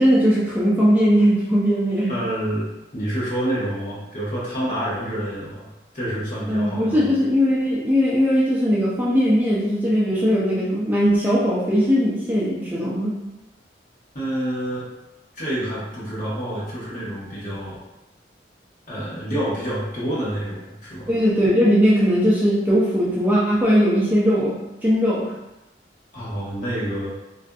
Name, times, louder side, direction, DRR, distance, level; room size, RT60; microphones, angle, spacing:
voice 1, 0.0-2.1 6.5-13.2 21.1-25.3, equal, 10° right, -7 dB, 0.3 m, -19 dB
voice 2, 2.1-2.7 2.9-5.7 5.9-7.1 14.1-14.9 15.3-17.8 18.9-21.1 26.1-27.1, right 1 dB, 45° left, -8 dB, 1.0 m, -28 dB
2.5 x 2.5 x 2.3 m, 0.97 s
head